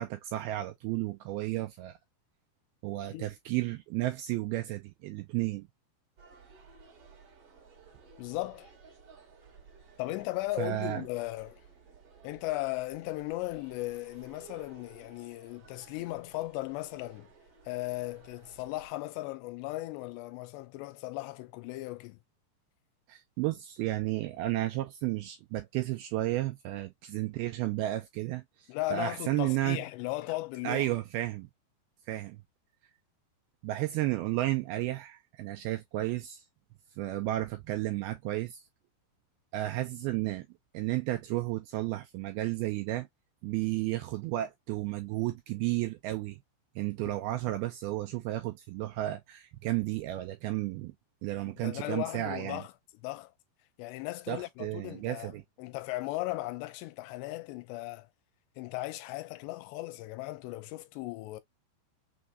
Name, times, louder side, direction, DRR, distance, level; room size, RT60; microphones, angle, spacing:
voice 1, 0.0-2.0 2.8-5.7 10.6-11.0 23.1-29.8 30.6-31.5 32.1-32.4 33.6-36.4 37.0-38.6 39.5-40.5 40.7-43.1 43.4-46.4 46.8-50.9 51.2-52.6 54.3-55.4, right 16 dB, 85° right, 2.2 m, -33 dB
sound 1, 6.2-18.9, right 5 dB, 45° right, 2.0 m, -56 dB
voice 2, 8.2-8.7 10.0-11.6 12.2-17.3 17.7-22.2 28.7-30.9 47.0-47.1 51.4-52.7 53.0-53.3 53.8-58.1 58.6-61.4, left 19 dB, 90° left, 2.8 m, -37 dB
6.3 x 2.7 x 2.4 m
omnidirectional pair, 4.9 m